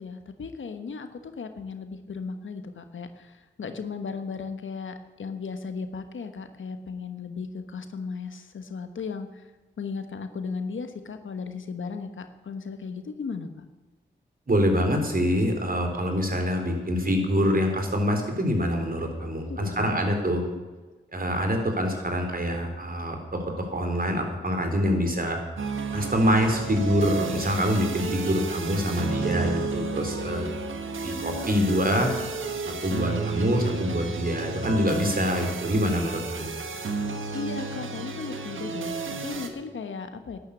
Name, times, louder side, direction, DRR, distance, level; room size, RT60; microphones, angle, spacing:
voice 1, 0.0-4.9 5.2-9.5 9.8-13.7 19.5-19.9 37.3-40.4, left 5 dB, 75° left, 8 dB, 1.4 m, -36 dB
voice 2, 14.5-20.4 21.1-23.4 23.7-25.4 25.9-30.5 31.0-32.1 32.8-36.5, equal, 45° right, 4 dB, 3.9 m, -25 dB
sound 1, 25.6-39.5, right 4 dB, 80° right, 1.5 m, -32 dB
12.0 x 10.5 x 8.5 m, 1.2 s
cardioid pair, 45°, 20 cm